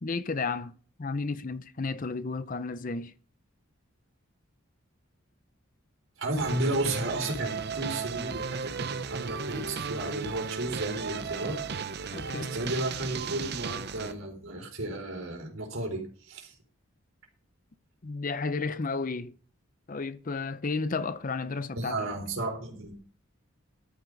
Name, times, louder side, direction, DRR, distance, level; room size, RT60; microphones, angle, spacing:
voice 1, 0.0-3.1 12.1-12.6 18.0-19.3 19.9-22.1, left 4 dB, 40° left, 0.6 m, -32 dB
voice 2, 6.2-11.6 12.4-16.6 21.7-23.0, right 2 dB, 75° right, 4.2 m, -33 dB
sound 1, 6.4-14.1, right 5 dB, 50° right, 0.7 m, -35 dB
13.0 x 9.8 x 4.0 m
head